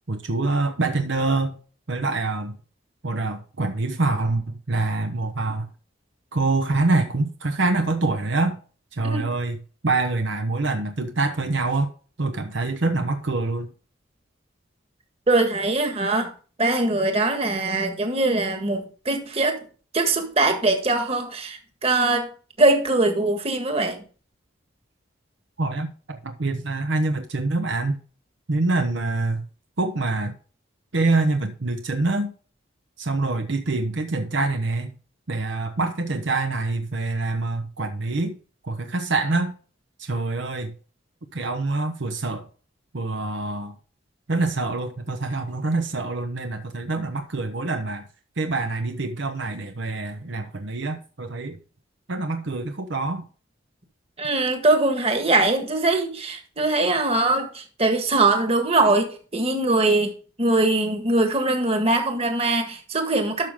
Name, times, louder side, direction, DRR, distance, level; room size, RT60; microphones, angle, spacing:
voice 1, 0.1-1.6 1.9-2.6 3.0-5.7 6.3-8.6 8.9-9.6 9.8-11.9 12.2-13.7 25.6-28.0 28.5-29.5 29.8-30.4 30.9-32.3 33.0-35.0 35.3-38.4 38.6-39.5 40.0-40.7 41.3-42.5 42.9-43.7 44.3-48.1 48.4-51.6 52.1-53.3, right 3 dB, 65° right, 0.9 m, -25 dB
voice 2, 15.3-16.3 16.6-19.6 19.9-22.3 22.6-24.0 54.2-60.1 60.4-63.5, right 2 dB, 30° right, 1.7 m, -22 dB
12.0 x 6.3 x 3.7 m
head